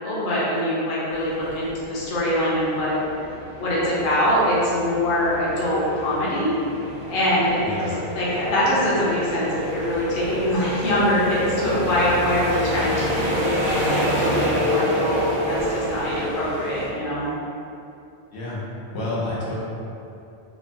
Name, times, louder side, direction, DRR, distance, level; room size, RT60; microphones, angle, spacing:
voice 1, 0.0-2.9 3.6-6.5 7.1-17.3, left 1 dB, 55° left, -8 dB, 0.8 m, -23 dB
sound 1, 1.1-16.9, equal, 65° right, 1.0 m, -28 dB
voice 2, 7.6-8.0 18.3-18.6 18.9-19.5, left 2 dB, 90° left, -8 dB, 1.0 m, -29 dB
3.0 x 2.0 x 2.5 m, 2.7 s
omnidirectional pair, 1.1 m